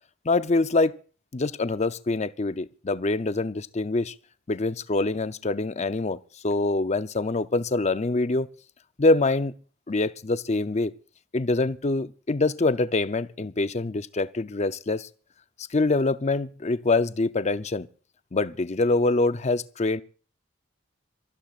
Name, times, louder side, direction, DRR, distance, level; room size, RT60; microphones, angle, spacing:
voice 1, 0.2-1.0 1.3-4.1 4.5-8.5 9.0-9.5 9.9-10.9 11.3-15.1 15.7-17.9 18.3-20.0, left 2 dB, 35° left, 0.6 m, -25 dB
26.5 x 15.0 x 2.5 m
head